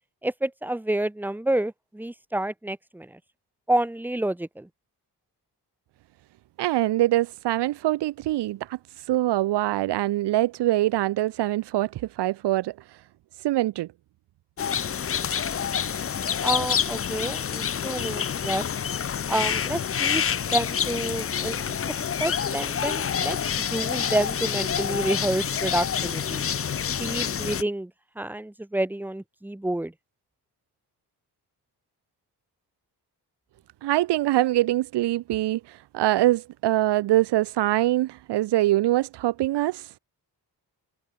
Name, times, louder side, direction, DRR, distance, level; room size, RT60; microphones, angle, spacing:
voice 1, 0.2-3.2 3.7-4.7 16.4-18.6 19.3-20.2 20.5-21.8 22.2-23.4 23.7-26.4 27.0-27.9 28.2-29.9, right 1 dB, 5° right, 1.2 m, -29 dB
voice 2, 6.6-8.8 9.1-12.7 13.4-13.9 33.8-35.6 35.9-39.9, right 15 dB, 90° right, 0.7 m, -23 dB
sound 1, 14.6-27.6, left 8 dB, 35° left, 0.6 m, -27 dB
cardioid pair, 100°, 40 cm